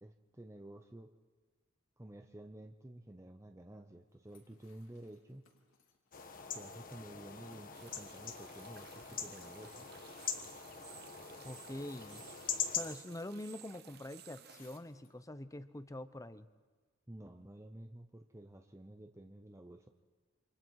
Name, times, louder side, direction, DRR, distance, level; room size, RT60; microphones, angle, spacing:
voice 1, 0.0-1.1 2.0-5.4 6.5-9.9 17.1-19.9, right 1 dB, 15° right, 5 dB, 0.8 m, -52 dB
sound 1, 4.2-8.0 8.3-9.5 10.0-10.6 11.8-13.0 14.4-15.2, left 5 dB, 85° left, 3.3 m, -66 dB
sound 2, 6.1-13.0, left 7 dB, 45° left, 1.4 m, -43 dB
sound 3, 7.7-14.8, right 9 dB, 50° right, 1.0 m, -57 dB
voice 2, 11.4-12.2 12.7-16.5, left 1 dB, 15° left, 12 dB, 0.8 m, -45 dB
28.5 x 26.0 x 4.7 m, 1.3 s
head